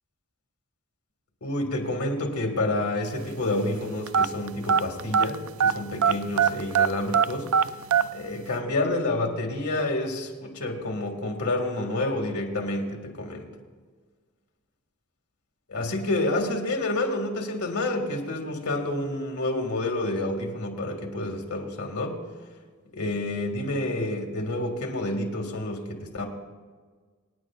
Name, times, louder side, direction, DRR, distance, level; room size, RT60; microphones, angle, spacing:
voice 1, 1.4-7.5 8.1-13.5 15.7-22.2 22.9-26.3, left 2 dB, 85° left, 3 dB, 2.0 m, -29 dB
sound 1, 4.1-5.8 6.0-8.1, right 7 dB, 65° right, 0.4 m, -21 dB
25.5 x 9.7 x 2.5 m, 1.5 s
head